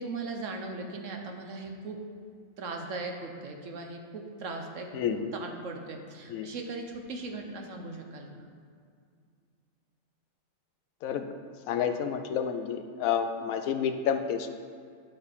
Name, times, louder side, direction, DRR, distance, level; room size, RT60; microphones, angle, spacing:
voice 1, 0.0-2.0 2.6-8.5, right 3 dB, 65° right, 3 dB, 1.2 m, -38 dB
voice 2, 4.9-5.3 6.3-6.5 11.0-11.3 11.7-14.5, left 8 dB, 85° left, 7 dB, 1.1 m, -29 dB
9.7 x 4.4 x 6.8 m, 2.2 s
omnidirectional pair, 1.4 m